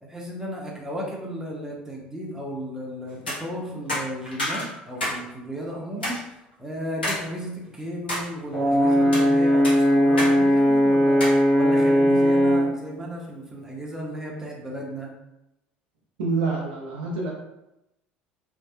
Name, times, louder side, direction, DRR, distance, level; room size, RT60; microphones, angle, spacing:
voice 1, 0.0-6.2 6.6-11.2 11.5-15.1, equal, 10° right, -3 dB, 0.8 m, -34 dB
sound 1, 3.1-3.4 3.9-5.2 5.5-5.6 6.0-6.2 7.0-7.2 7.7-8.3 8.9-9.3 9.6-10.3 10.6-10.7 11.2-11.4, left 1 dB, 85° left, 0.7 m, -28 dB
Brass instrument, 8.5-12.8, equal, 40° left, 0.9 m, -19 dB
voice 2, 16.2-17.3, right 3 dB, 75° right, -2 dB, 0.5 m, -27 dB
2.7 x 2.3 x 2.3 m, 0.90 s
figure-of-eight pair, 65°, 5 cm